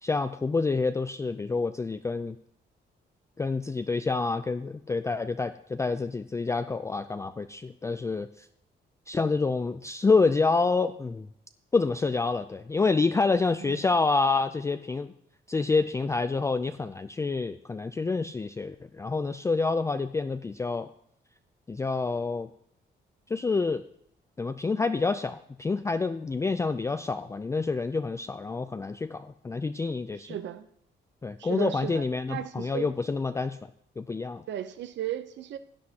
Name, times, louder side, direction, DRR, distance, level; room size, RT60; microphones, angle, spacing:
voice 1, 0.0-2.4 3.4-8.5 9.1-11.3 11.7-15.1 15.5-20.9 21.7-22.5 23.3-23.8 24.4-30.3 31.2-33.6 34.0-34.4, left 4 dB, 15° left, 9 dB, 0.3 m, -27 dB
voice 2, 13.6-13.9 30.2-30.7 31.4-32.9 34.5-35.6, right 11 dB, 75° right, 12 dB, 0.7 m, -36 dB
16.5 x 9.7 x 2.8 m, 0.70 s
cardioid pair, 130°, 19 cm